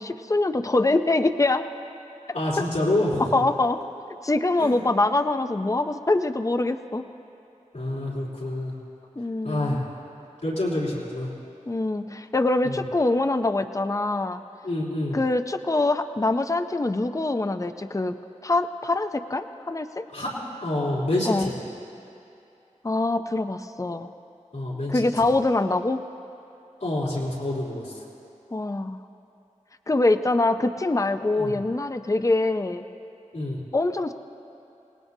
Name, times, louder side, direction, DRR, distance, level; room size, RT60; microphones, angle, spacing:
voice 1, 0.0-1.7 3.2-3.8 4.2-7.0 9.2-9.8 11.7-14.4 15.1-18.1 18.4-20.1 21.3-21.5 22.8-24.1 24.9-26.0 28.5-29.0 29.9-32.8 33.7-34.1, left 2 dB, 25° left, 9 dB, 0.5 m, -24 dB
voice 2, 2.3-3.3 4.6-4.8 7.7-8.7 9.4-9.8 10.4-11.3 12.6-12.8 14.6-15.2 20.1-20.3 20.6-21.5 24.5-25.1 26.8-27.9 31.4-31.5 33.3-33.6, left 1 dB, 90° left, -9 dB, 3.4 m, -27 dB
27.0 x 19.0 x 2.8 m, 2.7 s
wide cardioid pair, 65°, 13 cm